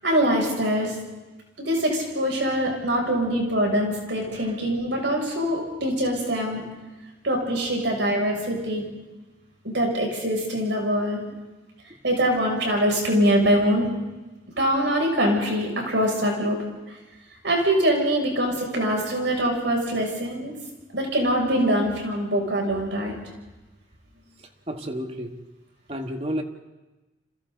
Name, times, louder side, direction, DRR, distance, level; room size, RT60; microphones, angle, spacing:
voice 1, 0.0-0.9 1.6-6.6 7.2-8.8 9.6-11.2 12.0-13.9 14.6-16.6 17.4-20.5 20.9-23.1, equal, 75° right, 0 dB, 7.2 m, -23 dB
voice 2, 24.7-25.4 25.9-26.4, equal, 35° right, 4 dB, 1.9 m, -31 dB
29.5 x 27.0 x 4.1 m, 1.1 s
head